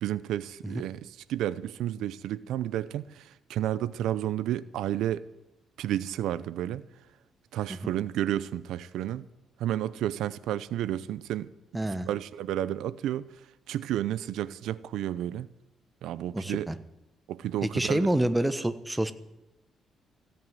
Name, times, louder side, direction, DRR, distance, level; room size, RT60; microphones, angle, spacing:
voice 1, 0.0-5.2 5.8-6.8 7.5-9.2 9.6-11.5 12.0-13.3 13.7-15.5 16.0-16.7 17.3-18.3, right 12 dB, 85° right, 0.6 m, -31 dB
voice 2, 11.7-12.1 16.3-16.7 17.6-19.1, right 1 dB, 10° right, 1.0 m, -27 dB
16.0 x 9.2 x 9.4 m
cardioid pair, 100°, 0 cm